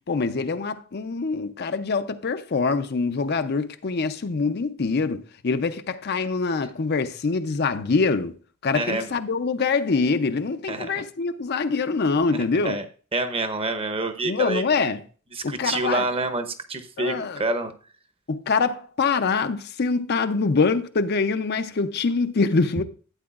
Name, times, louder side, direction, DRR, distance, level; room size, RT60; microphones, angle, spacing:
voice 1, 0.1-8.3 8.6-12.8 14.2-15.0 15.4-16.0 17.0-17.4 18.3-22.8, left 4 dB, 50° left, 0.5 m, -24 dB
voice 2, 8.7-9.1 10.7-11.0 12.3-12.8 13.1-14.6 15.3-17.7, right 2 dB, 25° right, 0.8 m, -27 dB
12.5 x 8.7 x 2.4 m
head